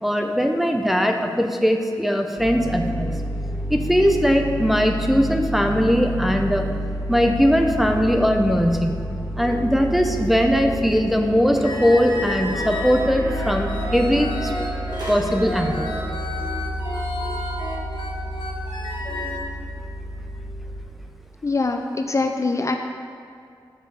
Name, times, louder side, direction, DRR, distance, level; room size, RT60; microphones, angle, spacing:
voice 1, 0.0-3.1 3.7-6.7 7.1-9.0 9.4-14.5 15.1-15.9, equal, ahead, 3 dB, 0.6 m, -20 dB
sound 1, 2.4-20.8, equal, 20° right, 1.5 m, -30 dB
sound 2, 10.9-15.6, left 1 dB, 55° right, 2.1 m, -39 dB
sound 3, 11.6-19.4, left 1 dB, 80° left, 1.3 m, -31 dB
voice 2, 21.4-22.8, left 3 dB, 40° left, 5 dB, 0.4 m, -23 dB
6.4 x 5.1 x 6.5 m, 2.3 s
wide cardioid pair, 85°, 8 cm